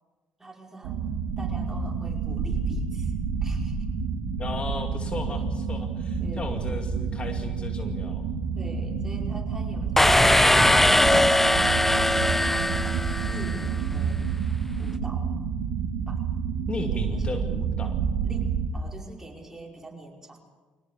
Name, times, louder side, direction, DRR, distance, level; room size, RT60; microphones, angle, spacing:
voice 1, 0.4-1.1 1.4-3.8 6.2-6.5 8.5-14.3 14.8-15.4 16.1-16.3 16.8-17.3 18.2-20.4, right 2 dB, 15° right, 1 dB, 5.4 m, -44 dB
sound 1, 0.8-18.7, right 5 dB, 85° right, 2.2 m, -29 dB
voice 2, 4.4-8.3 16.7-18.0, left 3 dB, 35° left, 5 dB, 2.4 m, -36 dB
sound 2, 10.0-13.7, left 1 dB, 10° left, 0.7 m, -20 dB
23.5 x 18.5 x 7.3 m, 1.3 s
supercardioid pair, 70°, 3 cm